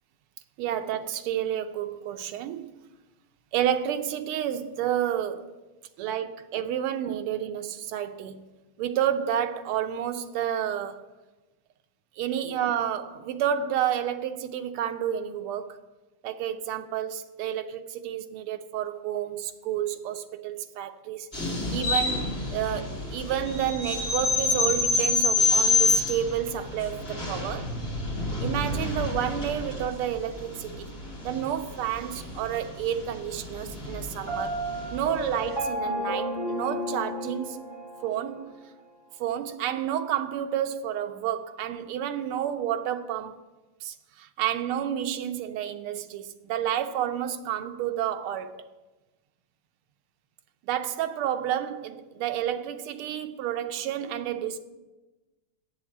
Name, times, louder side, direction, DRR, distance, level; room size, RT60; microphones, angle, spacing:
voice 1, 0.6-2.7 3.5-5.5 6.0-8.5 8.8-11.0 12.2-15.8 16.2-27.7 28.4-34.6 34.9-37.7 38.0-38.5 39.2-43.3 43.8-48.6 50.7-54.6, right 10 dB, 85° right, 1.6 m, -30 dB
sound 1, 21.3-35.4, left 3 dB, 30° left, 2.3 m, -28 dB
Piano, 34.3-38.1, equal, 10° right, 4.2 m, -32 dB
7.5 x 7.1 x 7.9 m
omnidirectional pair, 2.4 m